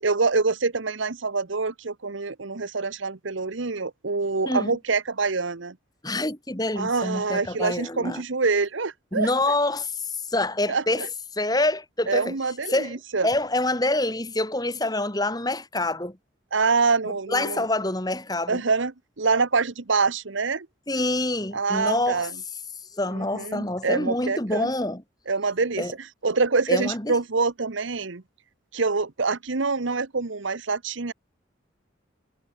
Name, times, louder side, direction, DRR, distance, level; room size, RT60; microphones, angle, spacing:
voice 1, 0.0-5.8 6.8-9.3 10.7-10.8 12.1-13.3 16.5-17.6 18.5-18.9 19.2-20.7 21.5-22.3 23.1-24.7 25.3-25.9 26.2-28.2 28.7-31.1, right 4 dB, 70° right, 1.1 m, -25 dB
voice 2, 4.4-4.8 6.0-8.2 9.1-11.1 11.3-12.4 12.7-16.2 17.3-18.6 20.9-22.3 22.9-25.0 25.8-25.9 26.7-27.2, left 2 dB, 20° left, 2.7 m, -26 dB
head